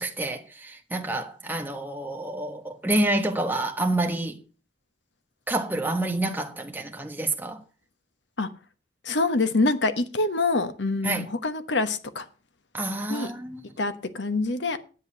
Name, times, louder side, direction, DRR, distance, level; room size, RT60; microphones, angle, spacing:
voice 1, 0.0-4.3 5.5-7.6 11.0-11.3 12.7-13.6, right 1 dB, 10° right, 1.4 m, -28 dB
voice 2, 9.0-12.3 13.1-13.3 13.8-14.8, left 3 dB, 80° left, 1.3 m, -25 dB
10.5 x 8.2 x 6.6 m
head